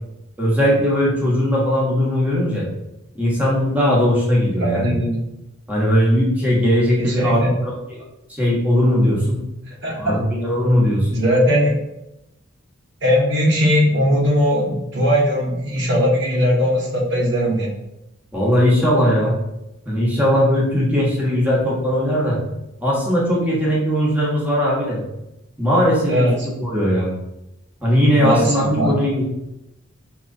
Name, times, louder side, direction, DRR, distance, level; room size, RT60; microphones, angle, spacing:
voice 1, 0.4-2.7 3.1-4.8 5.7-7.7 8.4-9.4 10.0-11.2 18.3-19.4 19.8-22.4 22.8-25.0 25.6-26.3 26.6-27.1 27.8-29.2, equal, 5° right, -5 dB, 1.1 m, -18 dB
voice 2, 4.6-5.2 7.0-7.5 9.8-10.2 11.1-11.7 13.0-17.7 26.1-26.5 28.2-28.9, equal, 60° right, -2 dB, 1.0 m, -19 dB
4.9 x 2.9 x 2.6 m, 0.91 s
head